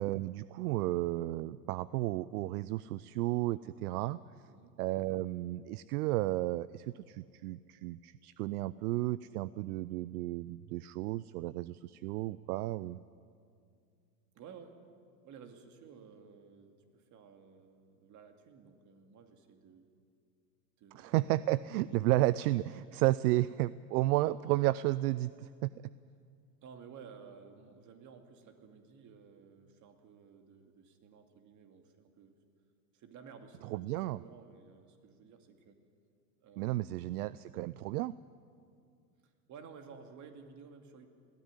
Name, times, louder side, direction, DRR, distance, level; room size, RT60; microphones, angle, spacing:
voice 1, 0.0-4.2 4.8-13.0 20.9-25.7 33.7-34.2 36.6-38.1, right 17 dB, 65° right, 18 dB, 0.6 m, -32 dB
voice 2, 4.5-4.8 14.3-14.8 15.2-19.8 20.8-21.2 26.6-32.4 32.9-35.8 36.4-37.0 39.2-41.1, right 6 dB, 35° right, 6 dB, 2.5 m, -54 dB
21.0 x 14.5 x 9.7 m, 2.3 s
hypercardioid pair, 115°, 48 cm